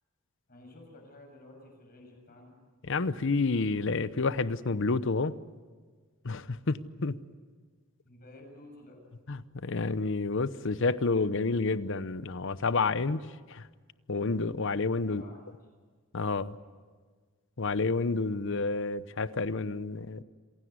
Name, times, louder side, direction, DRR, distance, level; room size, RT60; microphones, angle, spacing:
voice 1, 0.5-2.5 8.0-9.0 15.1-15.4, left 1 dB, 45° left, 2 dB, 7.4 m, -52 dB
voice 2, 2.8-5.4 6.2-7.2 9.3-13.2 13.5-13.7 14.1-15.2 16.1-16.6 17.6-20.2, left 3 dB, 65° left, 15 dB, 0.8 m, -29 dB
27.5 x 16.5 x 9.5 m, 1.5 s
head